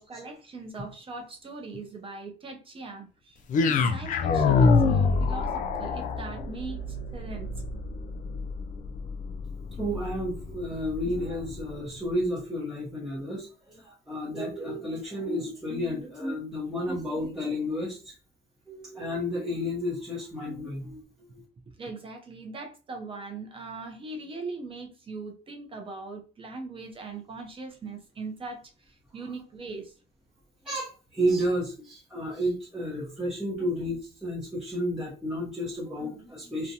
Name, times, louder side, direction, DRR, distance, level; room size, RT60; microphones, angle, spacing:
voice 1, 0.0-7.5 21.8-29.9, right 3 dB, 30° right, 3 dB, 0.5 m, -40 dB
sound 1, 3.5-11.7, left 4 dB, 50° left, 0.4 m, -26 dB
voice 2, 9.8-18.1 18.7-21.0 21.3-21.4 30.6-36.7, equal, 5° right, -8 dB, 0.8 m, -31 dB
2.5 x 2.1 x 2.7 m, 0.36 s
cardioid pair, 110°, 17 cm